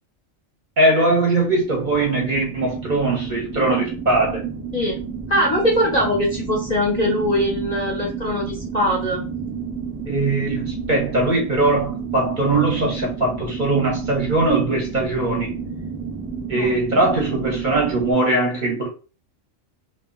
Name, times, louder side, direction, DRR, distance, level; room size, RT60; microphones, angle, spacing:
voice 1, 0.8-4.4 10.1-15.5 16.5-18.9, right 2 dB, 45° right, 0.7 m, -20 dB
sound 1, 1.4-18.1, right 6 dB, 15° right, 0.8 m, -30 dB
voice 2, 5.3-9.2 16.5-16.7, equal, 45° left, 0.6 m, -21 dB
2.2 x 2.2 x 3.6 m
omnidirectional pair, 1.3 m